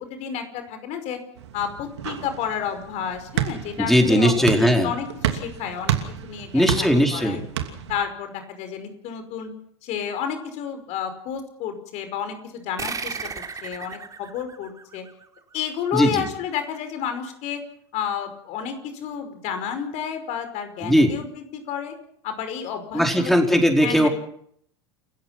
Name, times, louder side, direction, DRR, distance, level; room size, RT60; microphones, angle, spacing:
voice 1, 0.1-1.2 1.5-6.0 6.2-7.4 7.9-9.5 9.8-13.2 13.6-15.0 15.5-17.6 17.9-21.9 22.2-23.3 23.8-24.1, left 8 dB, 55° left, 8 dB, 5.3 m, -31 dB
sound 1, 1.3-8.0, right 10 dB, 75° right, 2.9 m, -30 dB
voice 2, 3.8-4.9 6.5-7.4 15.9-16.3 20.8-21.1 22.9-24.1, equal, ahead, 3 dB, 4.9 m, -18 dB
sound 2, 12.8-15.8, right 5 dB, 25° right, 3.9 m, -35 dB
29.5 x 15.5 x 5.9 m, 0.65 s
hypercardioid pair, 85°, 14 cm